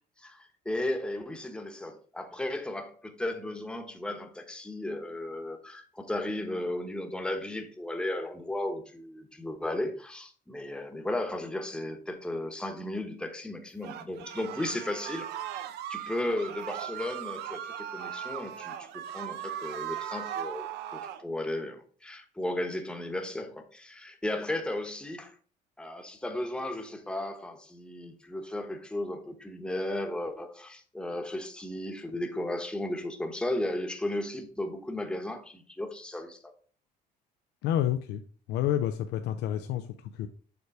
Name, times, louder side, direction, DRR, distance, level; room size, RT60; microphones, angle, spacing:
voice 1, 0.2-15.6 15.9-25.3 25.8-36.5, left 1 dB, 5° left, 1.0 m, -35 dB
sound 1, 13.8-21.2, right 10 dB, 80° right, 0.6 m, -38 dB
voice 2, 37.6-38.2 38.5-40.3, left 11 dB, 85° left, 0.5 m, -29 dB
6.8 x 3.3 x 4.7 m
cardioid pair, 110°, 17 cm